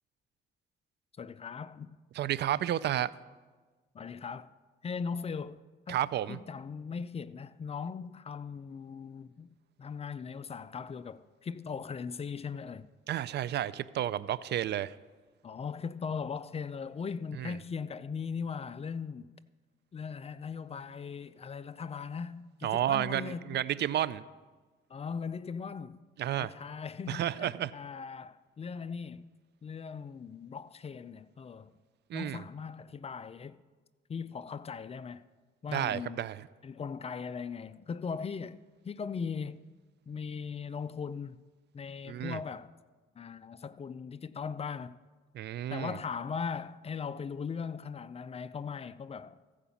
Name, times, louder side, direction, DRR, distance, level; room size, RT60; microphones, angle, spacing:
voice 1, 1.2-2.0 3.9-4.5 4.8-6.0 6.3-12.9 15.4-19.3 19.9-23.6 24.9-26.0 26.3-29.3 29.6-31.7 32.1-33.6 34.1-35.2 35.6-36.3 36.6-39.7 40.1-41.4 41.7-42.7 43.2-44.9 45.7-49.4, left 6 dB, 30° left, 0.4 m, -39 dB
voice 2, 2.1-3.1 5.9-6.4 13.1-14.9 17.4-17.5 22.6-24.2 26.2-26.5 27.1-27.7 32.1-32.4 35.7-36.4 42.1-42.4 45.3-46.0, right 12 dB, 60° right, 0.4 m, -31 dB
14.5 x 5.0 x 7.0 m
cardioid pair, 90°, 20 cm